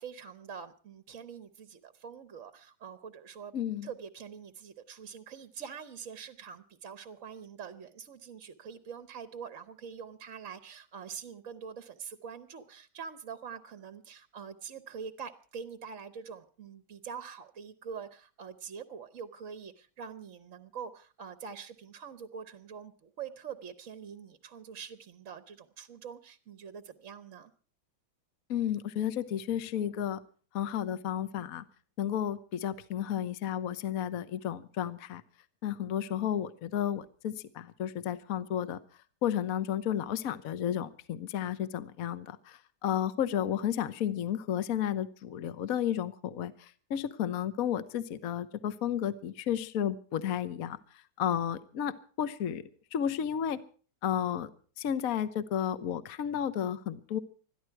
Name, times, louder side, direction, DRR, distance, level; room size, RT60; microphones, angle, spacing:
voice 1, 0.0-3.5 3.8-27.5, right 7 dB, 50° right, 12 dB, 1.1 m, -45 dB
voice 2, 3.5-3.9 28.5-30.2 30.5-31.6 32.0-35.2 35.6-38.8 39.2-50.8 51.2-52.6 52.9-53.6 54.0-54.5 54.8-57.2, left 10 dB, 50° left, 14 dB, 1.3 m, -32 dB
21.5 x 13.5 x 4.6 m, 0.41 s
omnidirectional pair, 2.2 m